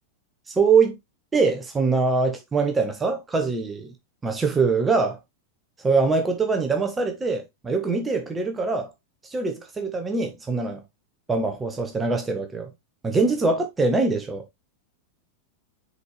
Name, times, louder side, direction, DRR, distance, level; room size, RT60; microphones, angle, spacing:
voice 1, 0.5-1.0 1.3-3.9 4.2-5.2 5.8-8.9 9.2-10.8 11.3-12.7 13.0-14.4, right 4 dB, 15° right, 1.3 m, -23 dB
6.8 x 4.7 x 3.3 m
figure-of-eight pair, 90°, 0 cm